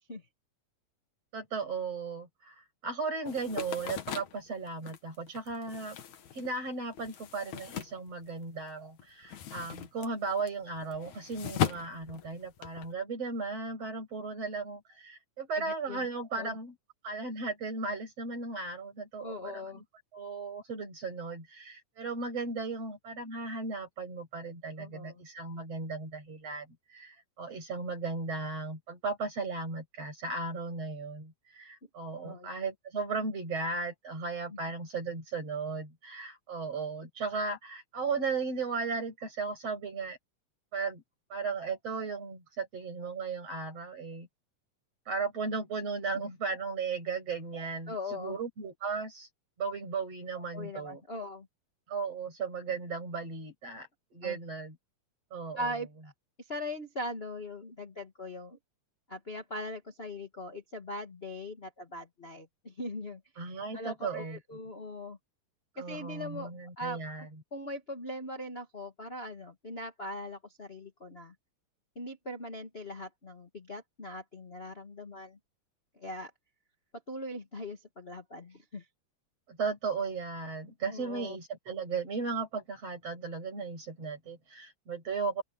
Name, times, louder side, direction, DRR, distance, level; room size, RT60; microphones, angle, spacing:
voice 1, 1.3-2.5 2.8-6.0 6.3-16.7 17.0-19.8 20.1-40.2 40.7-41.0 41.3-44.3 45.1-49.3 49.6-51.0 51.9-54.8 55.3-55.7 63.4-64.4 65.8-67.4 79.5-85.4, right 4 dB, 55° right, 8.5 m, -36 dB
sound 1, 3.3-8.7 9.0-12.9, left 9 dB, 75° left, 2.9 m, -38 dB
voice 2, 15.5-16.1 16.3-16.6 19.2-19.8 24.8-25.2 32.2-32.5 34.5-34.6 46.1-46.3 47.9-48.4 50.5-51.5 54.2-54.4 55.5-56.1 56.4-58.6 59.1-63.2 63.7-65.2 65.7-66.5 66.8-67.0 67.5-71.3 71.9-75.4 75.9-76.3 77.1-78.8 80.9-81.4, left 1 dB, 25° left, 1.7 m, -40 dB
open air
omnidirectional pair, 3.4 m